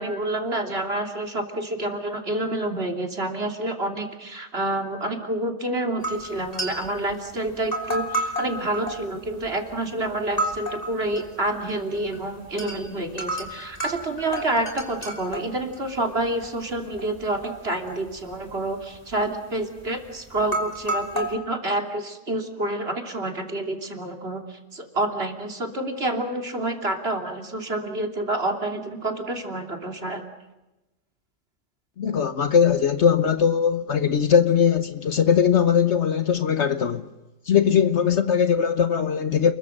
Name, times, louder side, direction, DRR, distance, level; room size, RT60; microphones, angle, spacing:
voice 1, 0.0-30.2, right 2 dB, 55° right, 3.3 m, -28 dB
sound 1, 6.0-7.1 7.5-9.7 10.2-11.2 11.6-12.2 12.5-12.8 13.2-16.5 16.8-17.5 17.9-18.7 18.9-19.2 19.9-20.0 20.4-21.3, right 1 dB, 30° left, 3.7 m, -31 dB
voice 2, 32.0-37.0 37.5-39.5, left 7 dB, 65° left, 1.3 m, -20 dB
30.0 x 22.0 x 6.6 m
omnidirectional pair, 1.3 m